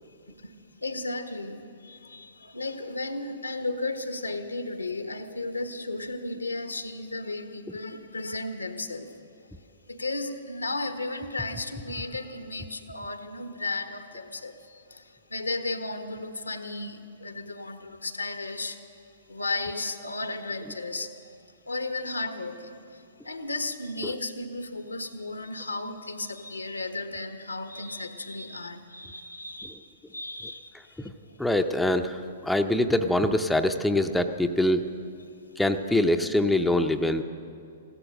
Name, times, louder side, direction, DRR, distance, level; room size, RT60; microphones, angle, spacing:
voice 1, 0.8-9.1 9.9-18.8 19.3-21.3 21.7-29.8 30.1-31.1 35.2-35.3, left 2 dB, 85° left, 8 dB, 1.1 m, -34 dB
voice 2, 31.4-34.9 35.6-37.2, left 1 dB, 5° left, 6 dB, 0.6 m, -24 dB
15.5 x 12.5 x 6.4 m, 2.5 s
figure-of-eight pair, 115°, 0 cm